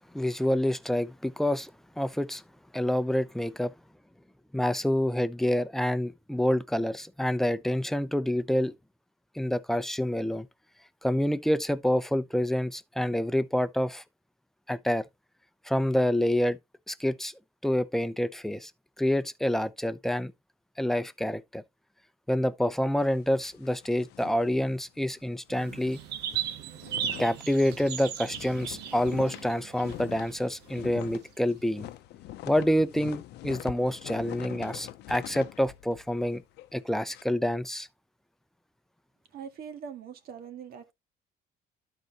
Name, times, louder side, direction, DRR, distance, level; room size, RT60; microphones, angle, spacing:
voice 1, 0.1-1.7 2.0-2.4 2.7-3.7 4.5-8.7 9.3-10.5 11.0-14.0 14.7-15.0 15.6-16.6 16.9-17.3 17.6-18.7 19.0-20.3 20.8-21.6 22.3-26.0 27.2-31.9 32.5-36.4 36.7-37.9, left 1 dB, ahead, 0.6 m, -27 dB
sound 1, 23.0-25.3 25.6-25.7 26.0-37.2, left 14 dB, 80° left, 0.6 m, -44 dB
sound 2, 25.5-31.1, right 9 dB, 85° right, 1.4 m, -37 dB
voice 2, 39.3-40.9, right 7 dB, 65° right, 1.9 m, -42 dB
12.0 x 4.8 x 2.9 m
cardioid pair, 110°, 17 cm